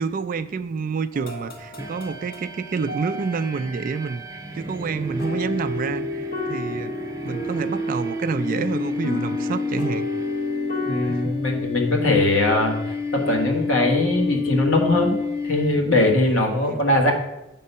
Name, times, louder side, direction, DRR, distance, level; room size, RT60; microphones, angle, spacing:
voice 1, 0.0-4.2 4.6-7.0 7.2-10.1 11.1-11.3 16.3-16.8, right 5 dB, 45° right, 12 dB, 0.3 m, -28 dB
sound 1, 1.1-11.2, left 2 dB, 50° left, 1.0 m, -34 dB
sound 2, 1.8-16.3, left 3 dB, 15° right, 0.7 m, -29 dB
voice 2, 10.8-17.1, left 2 dB, 70° left, 2 dB, 1.4 m, -21 dB
8.3 x 3.8 x 5.4 m, 0.95 s
head